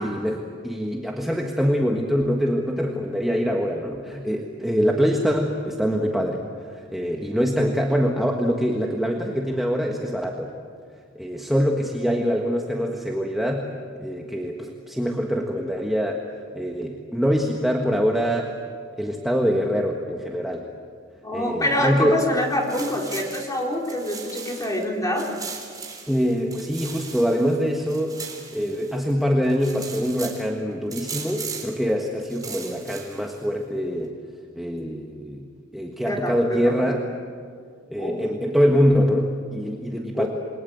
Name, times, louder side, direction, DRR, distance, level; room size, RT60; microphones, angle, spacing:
voice 1, 0.0-10.6 11.1-13.7 14.0-16.2 16.5-18.5 18.9-20.7 21.3-22.2 26.1-28.2 28.5-34.1 34.6-37.1 37.9-40.3, equal, ahead, 0 dB, 1.5 m, -24 dB
voice 2, 21.2-25.3 36.0-36.8 37.9-38.2 40.1-40.3, left 1 dB, 15° left, 0 dB, 4.0 m, -26 dB
sound 1, 22.3-24.8 25.2-29.1 29.4-30.5 30.9-31.8 32.2-33.4, right 5 dB, 20° right, 3.7 m, -38 dB
28.0 x 22.0 x 8.0 m, 2.1 s
head